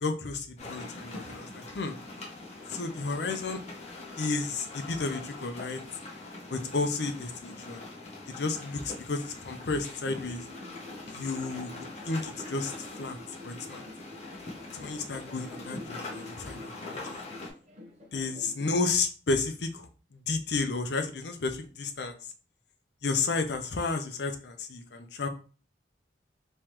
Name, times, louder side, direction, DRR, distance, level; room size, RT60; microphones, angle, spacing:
voice 1, 0.0-2.0 2.7-3.6 4.2-5.8 6.5-7.8 8.3-10.4 11.1-13.2 13.4-13.8 14.7-17.2 18.1-22.2 23.0-25.3, left 3 dB, 65° left, 6 dB, 0.6 m, -32 dB
ice seekonk river, 0.6-17.5, left 2 dB, 35° left, 1.0 m, -43 dB
sound 1, 10.2-18.8, left 2 dB, 35° right, 0.9 m, -49 dB
3.6 x 3.1 x 3.0 m, 0.36 s
head